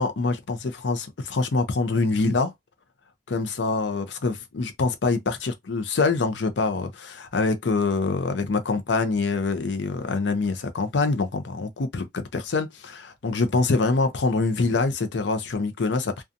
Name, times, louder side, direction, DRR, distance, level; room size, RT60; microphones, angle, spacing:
voice 1, 0.0-2.5 3.3-16.2, left 3 dB, 75° left, 0.5 m, -25 dB
2.6 x 2.3 x 2.5 m
head